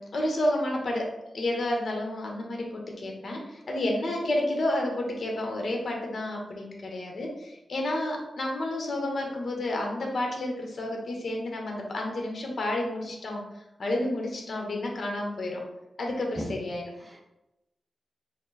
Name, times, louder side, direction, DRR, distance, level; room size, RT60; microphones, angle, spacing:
voice 1, 0.0-13.4 13.8-15.6 16.0-16.8, left 1 dB, 60° left, 0 dB, 0.9 m, -30 dB
voice 2, 16.1-16.7 16.9-17.2, right 1 dB, 15° right, 2 dB, 0.5 m, -39 dB
4.3 x 2.0 x 4.0 m, 0.92 s
wide cardioid pair, 125°, 0 cm